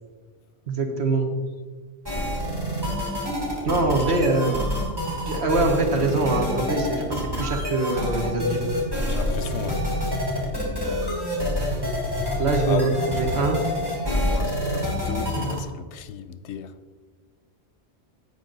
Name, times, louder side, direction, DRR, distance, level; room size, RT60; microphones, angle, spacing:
voice 1, 0.7-1.3 3.6-4.5 5.2-8.6 12.4-13.6, right 2 dB, 75° right, 1.6 m, -23 dB
sound 1, 2.1-15.6, left 1 dB, 20° right, 2.7 m, -27 dB
voice 2, 9.1-9.9 12.6-12.9 14.1-16.7, left 8 dB, 90° left, 0.9 m, -34 dB
10.5 x 8.0 x 4.0 m
omnidirectional pair, 1.1 m